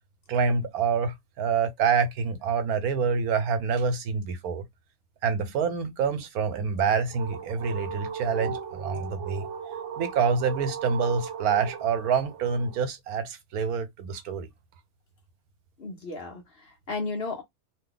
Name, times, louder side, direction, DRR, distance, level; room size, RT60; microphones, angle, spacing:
voice 1, 0.3-4.6 5.2-9.4 10.0-14.5, right 5 dB, 80° right, 1.2 m, -27 dB
sound 1, 6.7-12.9, right 7 dB, 60° right, 0.9 m, -37 dB
voice 2, 15.8-17.4, left 3 dB, 45° left, 1.0 m, -34 dB
2.8 x 2.1 x 3.8 m
omnidirectional pair, 1.6 m